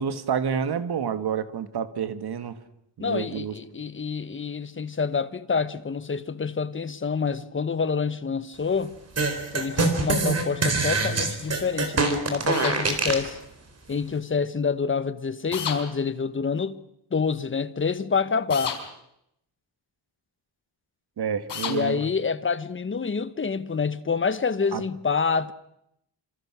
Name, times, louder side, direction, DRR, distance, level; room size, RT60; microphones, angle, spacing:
voice 1, 0.0-2.6 3.0-3.6 21.2-22.0 24.7-24.8, right 7 dB, 60° right, 1.9 m, -29 dB
voice 2, 3.0-8.9 9.5-13.4 13.9-16.8 17.1-18.8 21.6-25.5, left 5 dB, 25° left, 1.1 m, -27 dB
sound 1, 9.2-13.3, right 3 dB, 35° right, 4.0 m, -24 dB
sound 2, 12.5-12.8 15.5-15.8 18.5-18.8 21.5-21.8, left 7 dB, 65° left, 5.3 m, -30 dB
27.5 x 27.0 x 6.2 m
wide cardioid pair, 150°, 45 cm